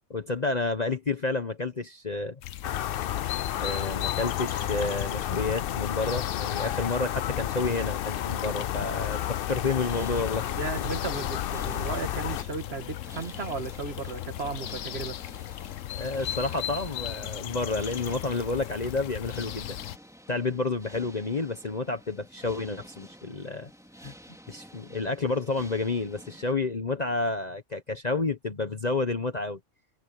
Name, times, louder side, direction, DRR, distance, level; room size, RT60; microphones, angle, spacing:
voice 1, 0.1-2.4 3.6-10.5 15.9-19.8 20.3-23.7 24.0-24.1 24.5-29.6, left 3 dB, 30° left, 1.0 m, -30 dB
sound 1, 2.4-20.0, left 13 dB, 65° left, 0.9 m, -38 dB
sound 2, 2.6-12.4, left 11 dB, 90° left, 0.5 m, -31 dB
sound 3, 9.1-26.5, equal, ahead, 2.6 m, -50 dB
voice 2, 10.6-15.2, right 4 dB, 45° right, 2.3 m, -35 dB
omnidirectional pair, 1.6 m